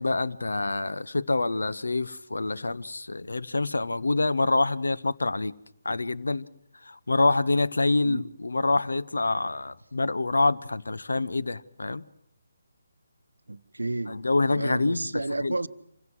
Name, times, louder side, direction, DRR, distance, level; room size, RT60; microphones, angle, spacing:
voice 1, 0.0-5.5 5.8-6.5 6.9-12.0 14.1-15.6, left 2 dB, 70° left, 0.8 m, -26 dB
voice 2, 13.5-14.1 14.5-15.7, right 2 dB, 75° right, 0.8 m, -31 dB
26.5 x 16.5 x 7.7 m
figure-of-eight pair, 145°, 0 cm